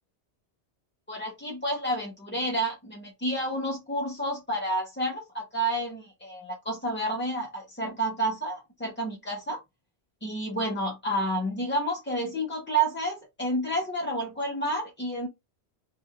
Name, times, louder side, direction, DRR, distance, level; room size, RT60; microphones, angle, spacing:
voice 1, 1.1-9.6 10.2-15.3, right 1 dB, 15° left, 0.4 m, -30 dB
2.8 x 2.3 x 2.8 m
omnidirectional pair, 1.1 m